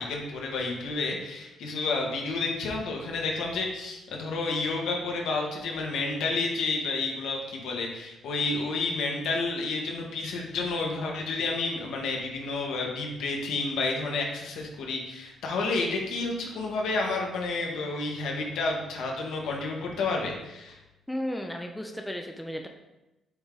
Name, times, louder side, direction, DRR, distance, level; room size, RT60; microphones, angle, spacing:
voice 1, 0.0-20.8, left 3 dB, 75° left, 0 dB, 1.4 m, -30 dB
voice 2, 21.1-22.7, equal, 5° left, 3 dB, 0.4 m, -34 dB
7.9 x 3.6 x 3.9 m, 0.98 s
cardioid pair, 175°, 0 cm